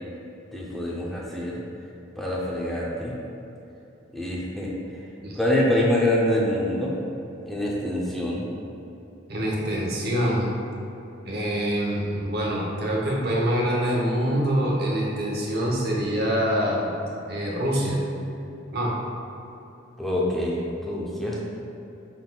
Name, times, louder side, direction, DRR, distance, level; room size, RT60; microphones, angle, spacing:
voice 1, 0.5-1.6 2.2-3.2 4.1-4.7 5.4-6.9 7.4-8.4 20.0-21.4, left 1 dB, ahead, -4 dB, 0.6 m, -25 dB
voice 2, 9.3-10.5 11.2-16.9 17.3-18.0 18.7-18.9, equal, 55° right, -3 dB, 0.9 m, -25 dB
5.4 x 4.0 x 2.3 m, 2.9 s
head